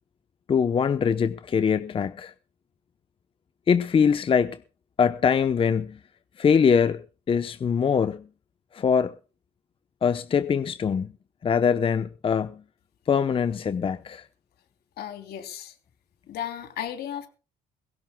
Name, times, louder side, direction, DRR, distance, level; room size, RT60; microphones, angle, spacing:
voice 1, 0.5-2.3 3.7-4.6 5.0-6.0 6.4-7.0 7.3-8.3 8.7-9.1 10.0-11.1 11.4-12.6 13.1-14.2, left 6 dB, 30° left, 0.7 m, -23 dB
voice 2, 15.0-15.8 16.3-17.3, left 10 dB, 70° left, 3.1 m, -35 dB
22.0 x 17.0 x 2.2 m
cardioid pair, 110°, 17 cm